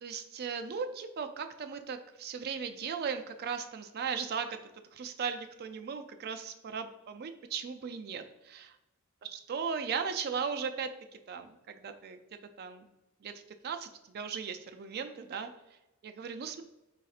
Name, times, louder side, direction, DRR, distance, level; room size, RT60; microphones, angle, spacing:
voice 1, 0.0-4.6 4.9-8.8 9.2-10.9 11.3-12.9 13.2-13.3 13.6-15.5 16.0-16.6, right 6 dB, 45° right, 8 dB, 0.3 m, -37 dB
4.1 x 4.1 x 2.4 m, 0.97 s
head